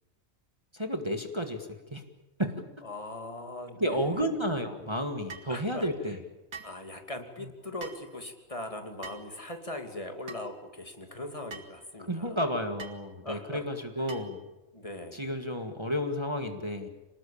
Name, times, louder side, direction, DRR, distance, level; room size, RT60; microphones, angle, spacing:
voice 1, 0.7-2.0 2.4-2.6 3.8-6.2 12.1-14.4 15.1-16.9, equal, 20° right, 5 dB, 1.8 m, -31 dB
voice 2, 2.8-4.3 5.5-5.9 6.6-12.4 13.2-13.6 14.0-14.1 14.7-15.2, left 1 dB, 25° left, 5 dB, 2.7 m, -40 dB
sound 1, 5.3-5.5 6.5-6.8 7.8-8.1 9.0-9.3 10.3-10.5 11.5-11.7 12.8-13.0 14.1-14.4, right 4 dB, 90° right, 2.4 m, -44 dB
26.0 x 19.5 x 8.6 m, 1.1 s
omnidirectional pair, 1.4 m